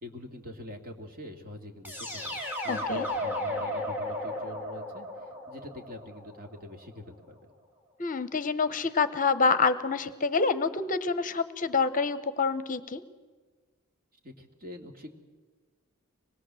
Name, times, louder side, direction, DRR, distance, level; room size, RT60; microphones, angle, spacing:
voice 1, 0.0-2.4 2.6-7.4 14.2-15.1, left 1 dB, 45° right, 3 dB, 2.6 m, -44 dB
sound 1, 1.8-6.8, left 1 dB, 10° right, 3.6 m, -34 dB
voice 2, 2.7-3.1 8.0-13.0, left 4 dB, 40° left, 13 dB, 0.9 m, -27 dB
25.0 x 20.5 x 7.7 m, 1.4 s
head